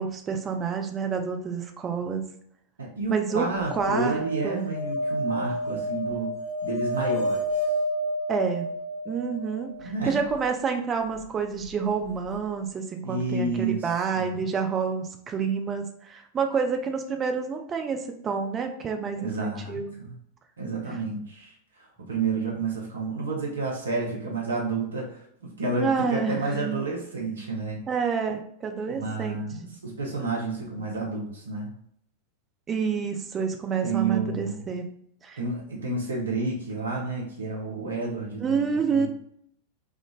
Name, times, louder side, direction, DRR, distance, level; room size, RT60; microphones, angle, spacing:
voice 1, 0.0-2.2 3.1-3.5 3.7-4.7 8.3-8.7 9.1-20.0 25.7-26.8 27.9-29.4 32.7-34.8 35.2-35.4 38.4-39.1, right 6 dB, 25° right, 4 dB, 0.5 m, -28 dB
voice 2, 2.8-6.4 6.6-7.5 9.8-10.2 13.0-13.9 14.2-14.3 19.2-20.1 20.6-27.8 28.9-31.7 33.8-34.6 35.4-38.6 38.9-39.1, right 3 dB, 75° right, -2 dB, 0.9 m, -30 dB
sound 1, 3.6-9.8 12.1-12.2 12.4-12.5, equal, 40° left, 1.1 m, -30 dB
3.5 x 2.4 x 2.4 m, 0.68 s
figure-of-eight pair, 90°, 0 cm